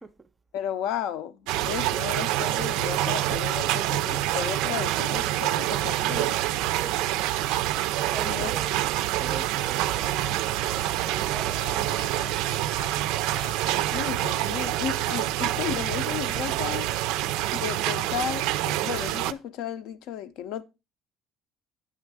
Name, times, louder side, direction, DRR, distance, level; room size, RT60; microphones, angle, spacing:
voice 1, 0.5-6.4 8.2-8.5 13.9-16.9 17.5-20.6, left 10 dB, 65° left, 0.5 m, -34 dB
sound 1, 1.5-19.3, right 14 dB, 85° right, 0.3 m, -27 dB
voice 2, 8.1-8.7 9.2-12.3, right 3 dB, 15° right, 0.4 m, -42 dB
sound 2, 9.2-17.3, left 7 dB, 90° left, 1.1 m, -48 dB
9.1 x 3.6 x 4.6 m
cardioid pair, 165°, 0 cm